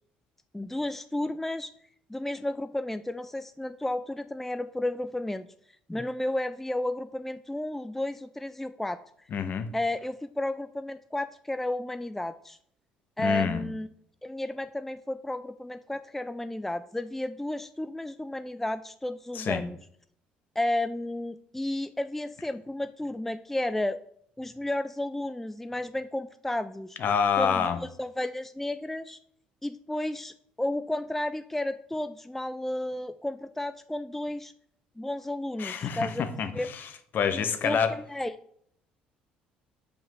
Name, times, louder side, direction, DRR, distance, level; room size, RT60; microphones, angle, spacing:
voice 1, 0.5-1.7 2.1-5.5 5.9-9.3 9.7-12.6 13.2-13.9 14.2-19.8 20.6-24.0 24.4-27.0 27.4-27.7 28.0-29.2 29.6-34.5 35.0-36.3 36.5-36.7 37.3-38.4, left 1 dB, 5° left, 12 dB, 0.4 m, -32 dB
voice 2, 9.3-9.7 13.2-13.6 19.3-19.6 27.0-27.8 35.6-36.9 37.1-37.9, left 7 dB, 50° left, 9 dB, 1.0 m, -27 dB
5.6 x 5.1 x 6.2 m, 0.66 s
hypercardioid pair, 60°, 4 cm